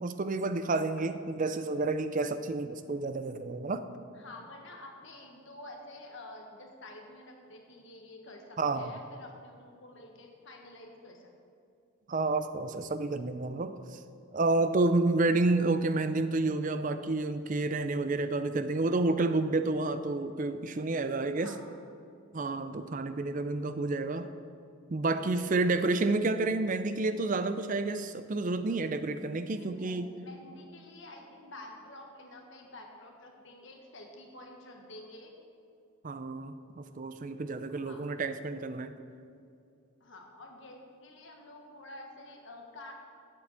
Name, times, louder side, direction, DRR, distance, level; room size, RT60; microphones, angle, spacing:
voice 1, 0.0-3.8 8.6-8.9 12.1-14.0 14.3-21.5 22.3-24.3 24.9-30.1 36.0-38.9, right 2 dB, 35° right, 10 dB, 0.4 m, -30 dB
voice 2, 4.1-11.3 21.3-21.6 29.6-35.3 37.7-38.0 40.0-42.9, left 1 dB, 55° left, 2 dB, 1.5 m, -49 dB
8.3 x 7.7 x 8.1 m, 2.5 s
head